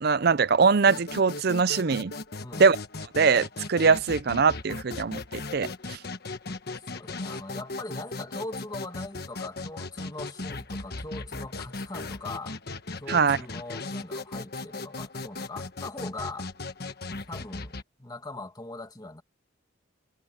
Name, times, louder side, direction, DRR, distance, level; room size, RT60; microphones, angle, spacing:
voice 1, 0.0-2.1 2.6-2.8 3.2-6.0 13.1-13.4, right 5 dB, 55° right, 0.6 m, -22 dB
sound 1, 0.8-17.8, left 3 dB, 55° left, 1.5 m, -37 dB
voice 2, 6.8-12.6 13.0-16.5 17.3-17.7 18.0-19.2, left 2 dB, 20° left, 2.3 m, -40 dB
head